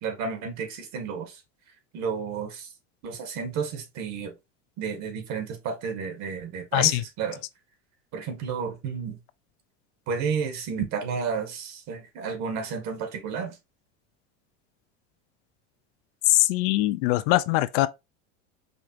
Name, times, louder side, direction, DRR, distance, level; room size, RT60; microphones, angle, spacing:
voice 1, 0.0-1.4 1.9-2.7 3.0-4.3 4.8-7.4 8.1-9.2 10.1-13.6, right 6 dB, 50° right, 1.3 m, -31 dB
voice 2, 6.7-7.0 16.3-17.9, left 17 dB, 65° left, 0.5 m, -22 dB
5.1 x 2.4 x 2.7 m
supercardioid pair, 125°, 34 cm